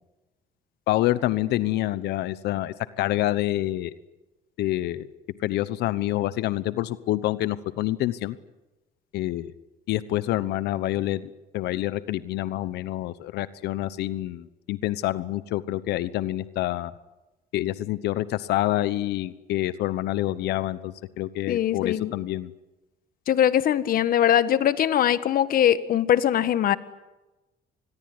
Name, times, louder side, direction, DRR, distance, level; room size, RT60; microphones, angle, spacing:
voice 1, 0.9-3.9 4.6-5.1 5.4-8.4 9.1-9.5 9.9-16.9 17.5-22.5, left 15 dB, 80° left, 16 dB, 1.1 m, -27 dB
voice 2, 21.5-22.1 23.3-26.8, left 10 dB, 60° left, 14 dB, 1.6 m, -21 dB
26.5 x 21.0 x 9.7 m, 1.1 s
cardioid pair, 110°, 17 cm